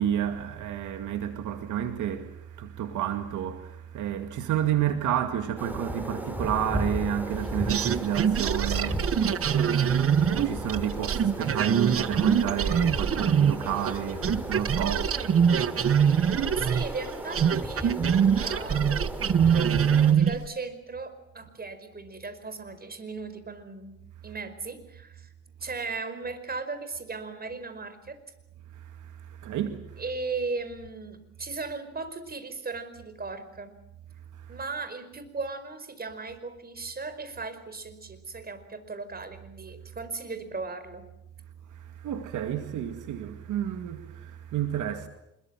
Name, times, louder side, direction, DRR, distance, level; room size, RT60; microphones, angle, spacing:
voice 1, 0.0-16.3 28.7-30.0 34.3-34.6 41.7-45.1, right 10 dB, 80° right, 2.2 m, -31 dB
sound 1, 5.6-20.1, equal, 5° right, 5.0 m, -36 dB
sound 2, 7.7-14.0 14.2-20.5, right 8 dB, 50° right, 1.2 m, -24 dB
voice 2, 16.2-17.9 18.3-19.0 19.6-24.0 24.2-25.3 25.6-28.2 30.0-33.7 34.5-41.0, right 4 dB, 30° right, 5.0 m, -37 dB
26.0 x 22.5 x 7.6 m
cardioid pair, 90°, 30 cm